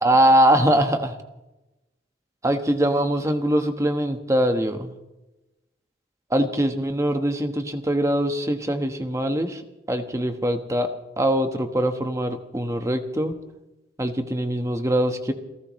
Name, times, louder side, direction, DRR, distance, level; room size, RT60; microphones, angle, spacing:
voice 1, 0.0-1.1 2.4-4.9 6.3-9.6 9.9-10.9 11.2-13.3 14.0-15.3, right 1 dB, 15° right, 6 dB, 1.3 m, -22 dB
29.0 x 14.5 x 3.2 m, 0.98 s
head